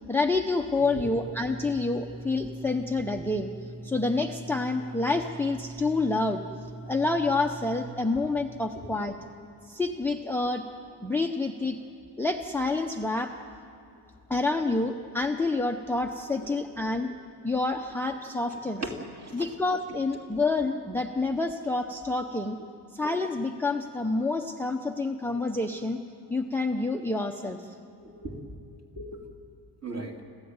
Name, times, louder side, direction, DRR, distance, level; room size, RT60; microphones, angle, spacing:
voice 1, 0.1-3.5 3.8-6.4 6.9-9.1 9.6-10.6 11.0-11.8 12.2-13.3 14.3-17.1 17.4-18.8 19.3-22.6 22.9-26.0 26.3-27.8, left 3 dB, 5° left, 5 dB, 0.6 m, -28 dB
sound 1, 0.8-7.9, right 2 dB, 70° right, 2.8 m, -42 dB
voice 2, 8.8-9.1 18.8-19.5 22.6-22.7 28.0-28.4 29.0-29.2 29.8-30.2, right 1 dB, 35° right, 2 dB, 2.7 m, -38 dB
29.5 x 13.0 x 9.5 m, 2.6 s
wide cardioid pair, 170°, 45 cm